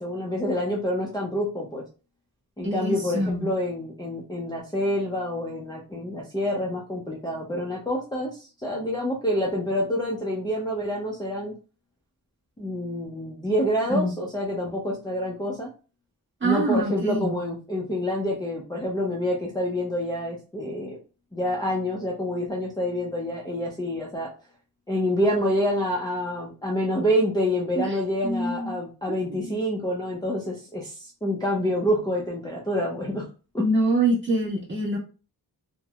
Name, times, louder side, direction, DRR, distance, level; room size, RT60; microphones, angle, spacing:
voice 1, 0.0-1.8 2.6-11.5 12.6-15.7 16.4-21.0 21.3-24.3 24.9-33.3 33.5-33.6, equal, 10° left, -4 dB, 0.5 m, -27 dB
voice 2, 2.6-3.4 13.9-14.1 16.4-17.3 27.8-27.9 28.2-28.7 29.3-29.6 33.6-35.0, right 1 dB, 30° right, -5 dB, 1.2 m, -25 dB
3.3 x 2.1 x 2.3 m, 0.34 s
wide cardioid pair, 150°, 38 cm